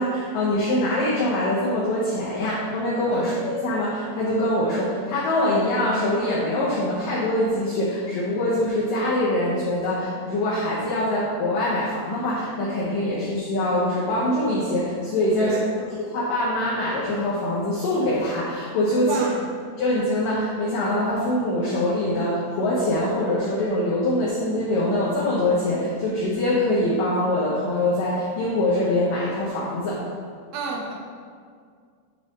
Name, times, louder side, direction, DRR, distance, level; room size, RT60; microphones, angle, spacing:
voice 1, 0.0-19.2 19.8-30.0, left 1 dB, 85° left, -7 dB, 1.9 m, -24 dB
voice 2, 15.4-15.8 19.0-19.5 30.5-30.9, right 3 dB, 85° right, -3 dB, 3.4 m, -31 dB
10.5 x 3.6 x 3.9 m, 2.1 s
omnidirectional pair, 5.3 m